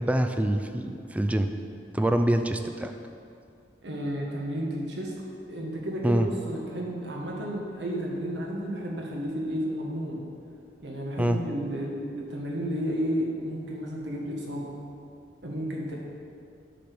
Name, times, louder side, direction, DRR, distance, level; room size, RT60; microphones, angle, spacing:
voice 1, 0.0-1.5 1.9-2.9 6.0-6.3 11.2-11.4, right 1 dB, 10° right, 7 dB, 0.4 m, -25 dB
voice 2, 3.8-5.1 5.5-10.3 10.8-14.7 15.4-15.9, equal, 80° right, -1 dB, 1.5 m, -32 dB
8.5 x 5.3 x 6.1 m, 2.4 s
head